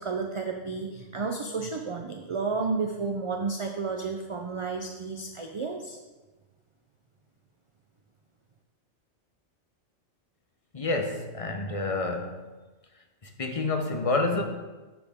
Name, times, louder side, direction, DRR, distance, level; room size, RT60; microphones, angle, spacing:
voice 1, 0.0-6.0, right 4 dB, 40° right, 0.5 m, -32 dB
voice 2, 10.7-12.4 13.2-14.4, left 3 dB, 30° left, 0.8 m, -28 dB
10.0 x 6.3 x 3.6 m
omnidirectional pair, 1.2 m